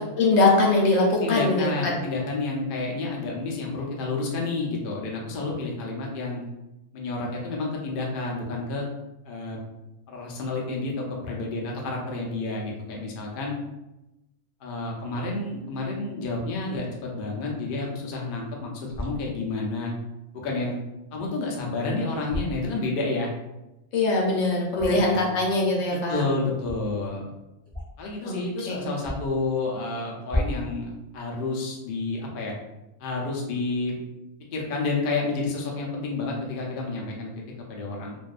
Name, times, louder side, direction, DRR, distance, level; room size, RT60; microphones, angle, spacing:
voice 1, 0.2-2.0 23.9-26.2 28.2-28.4 28.7-28.9, left 2 dB, 80° left, -2 dB, 1.0 m, -22 dB
voice 2, 1.2-6.4 6.9-8.8 9.2-9.6 10.1-13.6 14.6-18.7 19.0-19.9 20.3-20.8 21.1-23.3 24.8-25.3 26.1-27.3 28.0-32.5 33.0-34.0 34.5-37.4 37.7-38.2, left 3 dB, 60° left, -2 dB, 0.6 m, -30 dB
sound 1, 18.9-19.2 22.2-22.5 24.7-25.1 26.6-26.8 27.6-28.0 28.3-28.4 29.0-29.4 30.2-30.7, left 1 dB, 5° left, 0.7 m, -31 dB
2.6 x 2.2 x 2.3 m, 0.96 s
omnidirectional pair, 1.3 m